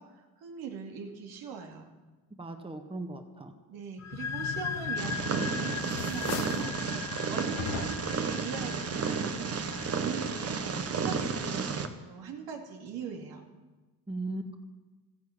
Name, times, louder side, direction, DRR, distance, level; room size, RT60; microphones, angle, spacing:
voice 1, 0.0-2.0 3.7-9.6 9.9-13.5, right 6 dB, 75° right, 2 dB, 2.6 m, -41 dB
voice 2, 2.3-3.5 14.1-14.6, right 2 dB, 15° right, 5 dB, 1.7 m, -38 dB
sound 1, 4.0-11.4, left 7 dB, 45° left, 0.9 m, -39 dB
sound 2, 5.0-5.4 5.8-6.7 7.6-8.2, left 6 dB, 80° left, 1.9 m, -38 dB
Purr, 5.0-11.9, right 5 dB, 40° right, 1.4 m, -32 dB
13.0 x 10.5 x 8.7 m, 1.2 s
supercardioid pair, 75°, 37 cm